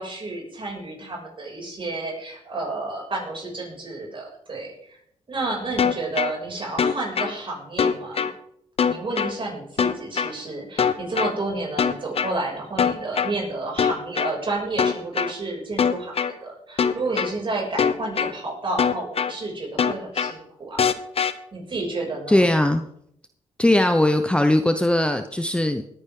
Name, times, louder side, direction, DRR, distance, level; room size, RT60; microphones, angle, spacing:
voice 1, 0.0-5.0 5.3-8.3 8.8-20.8 21.5-22.5, right 2 dB, 45° right, -1 dB, 6.4 m, -31 dB
sound 1, 5.8-6.3 6.8-7.3 7.8-8.3 8.8-9.3 9.8-10.3 10.8-11.3 11.8-12.3 12.8-13.3 13.8-14.3 14.8-15.3 15.8-16.3 16.8-17.3 17.8-18.3 18.8-19.3 19.8-20.3 20.8-21.3, left 7 dB, 55° left, 0.9 m, -21 dB
voice 2, 22.3-22.8 23.6-25.8, left 1 dB, 10° left, 7 dB, 0.8 m, -19 dB
19.0 x 10.0 x 3.8 m, 0.71 s
cardioid pair, 80°, 12 cm